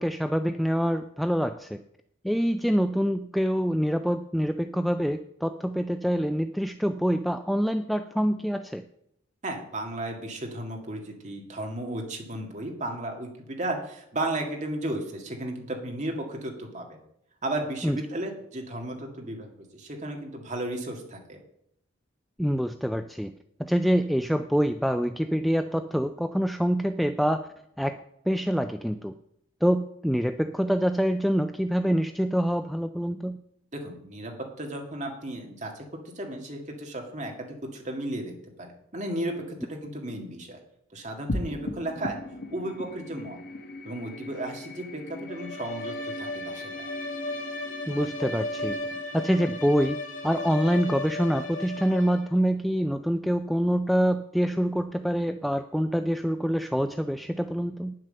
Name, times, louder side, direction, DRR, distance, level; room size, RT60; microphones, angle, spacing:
voice 1, 0.0-1.8 2.2-8.8 17.8-18.0 22.4-23.3 23.6-27.5 27.8-29.1 29.6-33.4 47.9-48.8 49.1-50.0 50.2-57.9, equal, ahead, 8 dB, 0.3 m, -26 dB
voice 2, 9.4-17.0 17.4-19.5 19.7-21.4 33.7-35.8 36.2-38.3 38.6-40.6 40.9-42.2 42.5-43.4 43.8-46.9, right 1 dB, 35° right, 2 dB, 1.9 m, -34 dB
sound 1, 41.3-51.9, left 1 dB, 55° left, 1.0 m, -40 dB
Bowed string instrument, 45.3-52.4, left 2 dB, 75° left, 1.6 m, -35 dB
9.8 x 7.6 x 6.5 m, 0.73 s
head